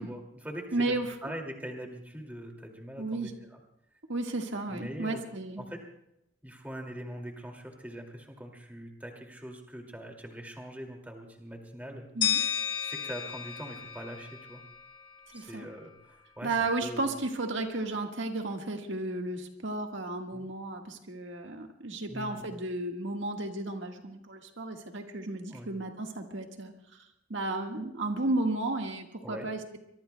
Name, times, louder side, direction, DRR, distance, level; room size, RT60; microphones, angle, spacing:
voice 1, 0.0-3.6 4.7-5.2 5.6-5.8 6.4-12.1 12.8-14.6 15.3-17.2 20.3-20.5 22.1-22.5 25.5-25.7 29.2-29.5, equal, 10° right, 2 dB, 2.3 m, -42 dB
voice 2, 0.7-1.1 3.0-3.3 4.1-5.6 12.1-12.4 15.3-15.6 16.4-27.0 27.3-29.8, right 2 dB, 70° right, 3 dB, 1.6 m, -33 dB
sound 1, 12.2-15.1, left 9 dB, 25° left, 1.5 m, -33 dB
24.5 x 23.0 x 2.2 m, 0.81 s
head